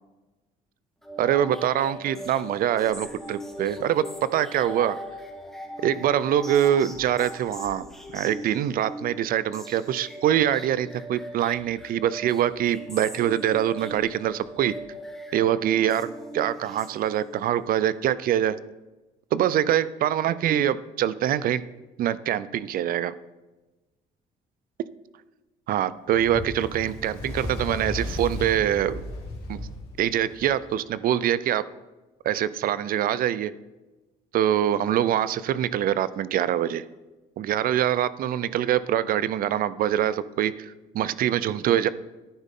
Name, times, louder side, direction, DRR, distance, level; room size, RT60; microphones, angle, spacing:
sound 1, 1.0-17.4, equal, 5° left, 2.5 m, -40 dB
voice 1, 1.2-5.0 5.8-7.8 8.1-14.7 15.3-16.1 16.3-18.6 19.3-21.6 22.0-23.1 25.7-29.0 29.5-29.6 30.0-31.6 32.2-33.5 34.3-36.8 37.4-41.9, right 11 dB, 60° right, 17 dB, 0.5 m, -24 dB
Fire, 26.1-30.6, left 2 dB, 80° left, 2.6 m, -35 dB
11.0 x 9.6 x 3.7 m, 1.1 s
supercardioid pair, 75°, 16 cm